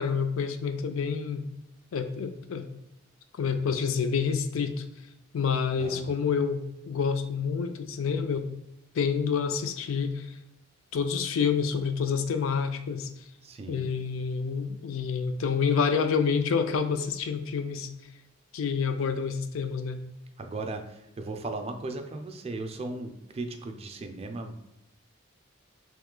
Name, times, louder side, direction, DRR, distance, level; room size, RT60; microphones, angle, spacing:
voice 1, 0.0-1.5 1.9-2.7 3.4-4.8 5.3-8.5 8.9-10.3 10.9-13.1 13.7-17.9 18.5-20.0, left 6 dB, 80° left, 8 dB, 0.4 m, -28 dB
voice 2, 13.4-13.8 20.4-24.5, right 2 dB, 30° right, 6 dB, 0.4 m, -37 dB
3.1 x 3.0 x 3.7 m, 0.86 s
head